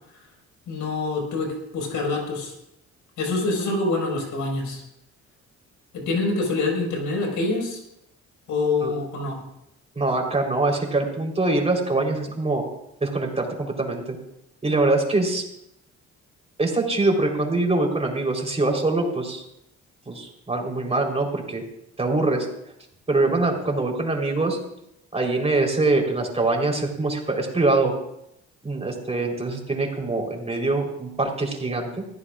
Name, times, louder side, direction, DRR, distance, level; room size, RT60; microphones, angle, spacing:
voice 1, 0.7-2.5 3.2-4.8 5.9-7.8 8.5-9.4, left 3 dB, 80° left, 0 dB, 5.3 m, -26 dB
voice 2, 10.0-12.6 13.0-14.2 14.6-15.4 16.6-19.4 20.1-21.6 22.0-22.5 23.1-24.6 25.1-27.9 28.6-31.9, right 2 dB, 20° right, 0 dB, 4.0 m, -23 dB
22.0 x 14.5 x 2.5 m, 0.80 s
cardioid pair, 90°, 30 cm